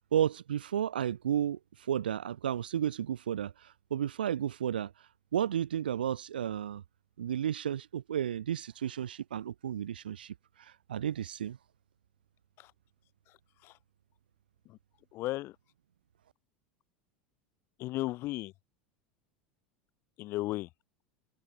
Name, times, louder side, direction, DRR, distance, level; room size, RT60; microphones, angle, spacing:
voice 1, 0.1-1.6 1.9-4.9 5.3-6.8 7.2-11.6, right 10 dB, 85° right, 2.8 m, -32 dB
voice 2, 15.1-15.6 17.8-18.5 20.2-20.7, left 18 dB, 55° left, 3.6 m, -35 dB
hypercardioid pair, 90°, 5 cm